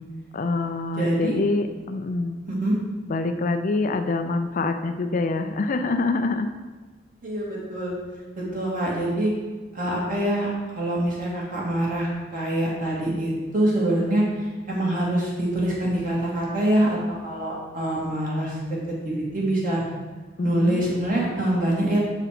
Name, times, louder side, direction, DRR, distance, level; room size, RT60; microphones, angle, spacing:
voice 1, 0.3-2.4 3.1-6.5 20.4-20.8, left 3 dB, 40° left, 7 dB, 0.4 m, -25 dB
voice 2, 1.0-1.4 2.5-2.8 7.2-7.9 8.4-9.3 9.7-14.2 14.7-17.0 17.2-18.6 19.0-19.8 20.4-22.0, right 1 dB, 45° right, -4 dB, 2.2 m, -25 dB
7.3 x 4.8 x 4.9 m, 1.3 s
head